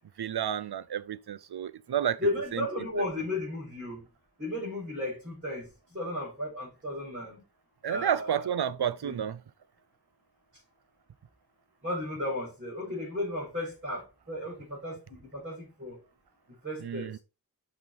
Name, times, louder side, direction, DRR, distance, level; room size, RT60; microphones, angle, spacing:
voice 1, 0.2-2.2 2.5-2.7 7.8-9.4 16.8-17.2, right 9 dB, 80° right, 0.6 m, -31 dB
voice 2, 2.2-4.0 4.4-5.7 5.9-7.3 7.8-8.5 9.0-9.2 11.8-16.0 16.6-17.1, left 1 dB, 30° right, 5.1 m, -34 dB
8.4 x 5.5 x 3.9 m
wide cardioid pair, 80°, 38 cm